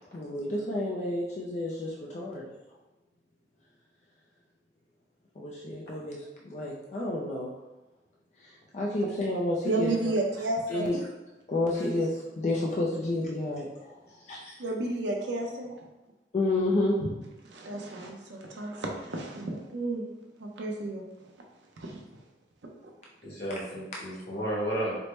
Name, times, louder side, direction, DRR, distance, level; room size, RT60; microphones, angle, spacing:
voice 1, 0.1-2.5 5.4-7.6 8.7-9.9 10.7-11.0 11.5-14.0 14.3-14.5 16.3-17.1, left 2 dB, 40° left, -3 dB, 0.4 m, -30 dB
voice 2, 9.6-10.9 14.6-15.7 17.5-20.0 20.4-21.3 21.8-22.0 22.6-22.9, right 2 dB, 85° right, 0 dB, 0.6 m, -32 dB
voice 3, 14.1-14.5 23.2-25.0, right 1 dB, 65° left, -6 dB, 1.3 m, -33 dB
4.3 x 2.1 x 3.1 m, 1.0 s
head